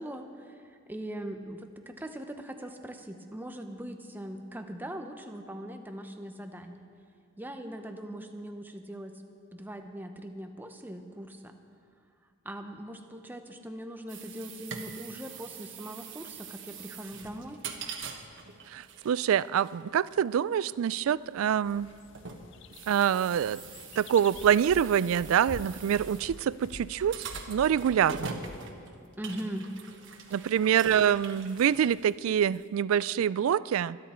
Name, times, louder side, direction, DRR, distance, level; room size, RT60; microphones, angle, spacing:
voice 1, 0.0-6.9 7.4-9.2 9.5-11.5 12.4-17.6 29.2-29.7 30.3-30.5, right 1 dB, 10° right, 6 dB, 0.8 m, -41 dB
sound 1, 14.1-32.7, right 5 dB, 60° right, 1.3 m, -44 dB
voice 2, 18.7-21.9 22.9-23.6 24.0-28.4 30.3-34.0, right 9 dB, 75° right, 19 dB, 0.3 m, -26 dB
sound 2, 21.6-28.7, left 4 dB, 60° left, 0.6 m, -48 dB
24.5 x 10.5 x 4.4 m, 2.2 s
head